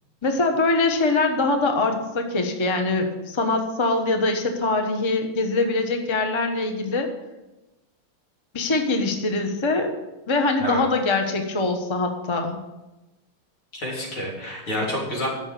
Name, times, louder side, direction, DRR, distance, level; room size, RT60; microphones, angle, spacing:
voice 1, 0.2-7.1 8.5-9.9 10.3-12.6, left 3 dB, 20° left, 4 dB, 0.8 m, -23 dB
voice 2, 13.7-15.3, equal, 85° left, -4 dB, 4.4 m, -28 dB
11.0 x 7.1 x 6.8 m, 1.0 s
omnidirectional pair, 2.3 m